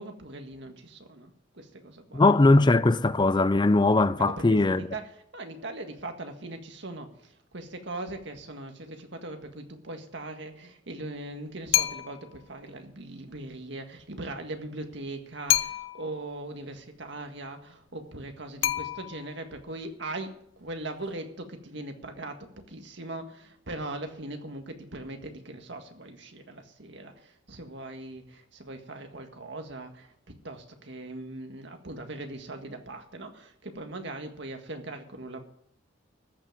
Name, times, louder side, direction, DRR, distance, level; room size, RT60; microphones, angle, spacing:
voice 1, 0.0-2.2 4.2-22.4 22.7-30.1 30.4-35.4, right 2 dB, 65° right, 1.8 m, -40 dB
voice 2, 2.1-4.9, left 2 dB, 25° left, 0.5 m, -20 dB
sound 1, 11.7-12.3 15.5-16.2 18.6-19.4, left 12 dB, 90° left, 0.8 m, -28 dB
14.0 x 5.9 x 9.1 m
head